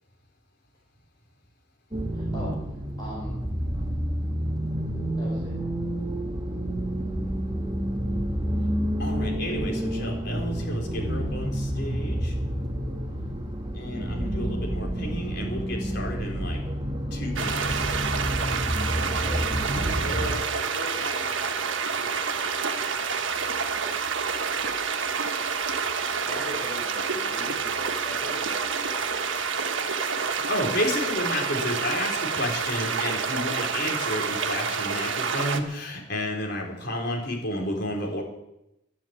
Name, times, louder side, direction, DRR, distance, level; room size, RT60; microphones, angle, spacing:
sound 1, 1.9-20.3, equal, 25° right, 1.5 m, -29 dB
voice 1, 2.1-2.5 3.0-3.3 5.2-5.5 19.1-20.3 26.1-28.6 28.9-29.6, equal, 20° left, -4 dB, 4.1 m, -41 dB
voice 2, 9.0-12.3 13.7-16.6 17.1-17.8 30.2-38.2, left 1 dB, 60° left, 0 dB, 4.2 m, -31 dB
sound 2, 17.4-35.6, right 5 dB, 85° right, 1.4 m, -28 dB
voice 3, 20.0-22.2, left 1 dB, 85° left, -2 dB, 2.9 m, -39 dB
11.5 x 11.0 x 9.0 m, 0.88 s
head